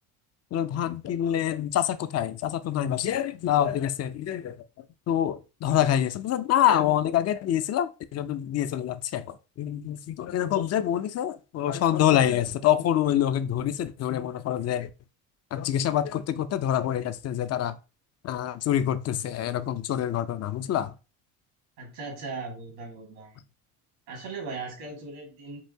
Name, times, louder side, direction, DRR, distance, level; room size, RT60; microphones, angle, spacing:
voice 1, 0.5-4.6 5.1-14.9 15.5-17.8 18.2-20.9, left 11 dB, 40° left, 0.5 m, -26 dB
voice 2, 21.8-23.4 24.1-25.6, right 4 dB, 80° right, 2.0 m, -38 dB
5.5 x 2.6 x 2.8 m
supercardioid pair, 75°, 43 cm